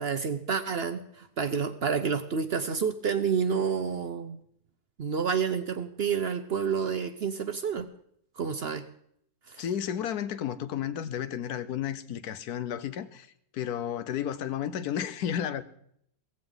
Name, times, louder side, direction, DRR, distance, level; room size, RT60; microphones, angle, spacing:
voice 1, 0.0-4.4 5.0-7.9 8.4-8.9 9.5-9.6, right 6 dB, 55° right, 0.7 m, -29 dB
voice 2, 9.6-13.3 13.5-15.6, left 9 dB, 75° left, 1.2 m, -32 dB
16.5 x 15.0 x 3.8 m
omnidirectional pair, 1.7 m